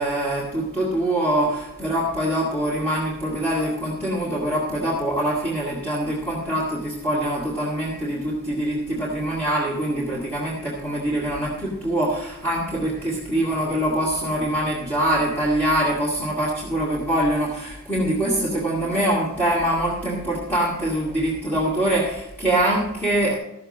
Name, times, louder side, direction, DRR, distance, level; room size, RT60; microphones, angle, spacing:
voice 1, 0.0-23.4, right 1 dB, 10° left, -7 dB, 2.1 m, -24 dB
14.0 x 7.0 x 5.3 m, 0.90 s
head